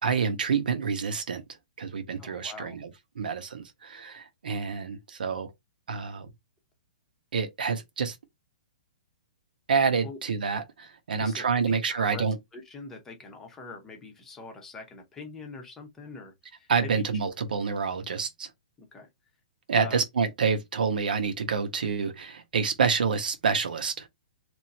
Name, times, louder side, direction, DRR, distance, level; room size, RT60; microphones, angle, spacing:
voice 1, 0.0-1.4 1.8-2.9 3.1-5.5 5.9-6.3 7.3-8.2 9.7-12.4 16.7-18.5 19.7-24.1, right 5 dB, 85° right, 1.0 m, -28 dB
voice 2, 2.2-2.7 10.0-10.2 11.1-17.0 18.8-19.1 19.7-20.0, left 4 dB, 10° left, 0.7 m, -43 dB
3.0 x 2.6 x 4.0 m
hypercardioid pair, 175°, 5 cm